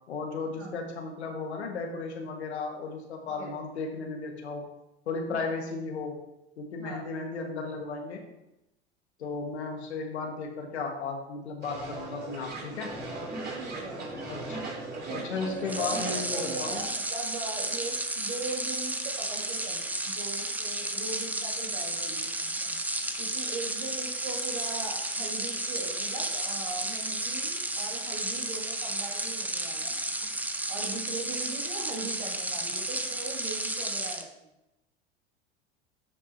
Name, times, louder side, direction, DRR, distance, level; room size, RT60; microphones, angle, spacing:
voice 1, 0.1-4.7 5.0-6.2 6.6-8.2 9.2-12.9 14.3-14.6 15.1-16.8, left 4 dB, 85° left, 2 dB, 1.7 m, -35 dB
voice 2, 6.8-7.1 13.5-14.1 15.1-22.8 23.2-30.0 30.7-34.5, right 3 dB, 75° right, -1 dB, 2.5 m, -40 dB
sound 1, 11.6-16.8, right 2 dB, 30° right, 3.0 m, -38 dB
sound 2, 15.6-34.3, right 1 dB, 5° right, 0.7 m, -32 dB
12.0 x 5.6 x 2.8 m, 0.90 s
hypercardioid pair, 90°, 33 cm